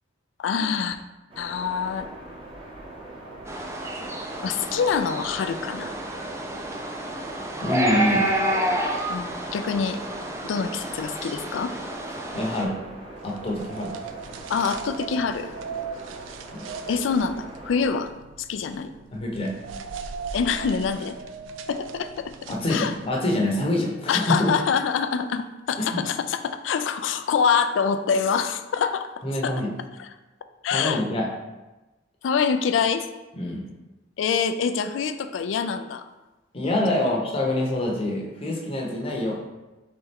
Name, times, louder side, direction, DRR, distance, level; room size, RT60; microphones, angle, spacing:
voice 1, 0.4-1.0 1.4-2.1 4.4-5.9 9.1-10.0 10.4-11.7 14.5-15.5 16.9-18.1 18.5-18.9 20.3-21.2 21.7-22.3 22.7-22.9 24.1-29.1 29.4-29.5 30.0-30.1 30.6-31.0 32.2-33.1 34.2-36.0 36.7-37.1, left 6 dB, 75° left, 10 dB, 0.3 m, -25 dB
sound 1, 1.3-17.9, right 1 dB, 30° right, 0.9 m, -42 dB
sound 2, 3.5-12.6, right 1 dB, 15° right, 0.4 m, -29 dB
voice 2, 7.6-8.3 12.3-12.8 13.2-13.9 16.5-16.7 19.1-19.5 22.5-24.5 25.8-26.0 29.2-29.7 30.7-31.3 33.3-33.6 36.5-39.4, left 1 dB, 30° left, -1 dB, 0.8 m, -25 dB
sound 3, 13.3-23.2, right 5 dB, 85° right, 0.3 m, -39 dB
4.2 x 3.4 x 3.5 m, 1.1 s
head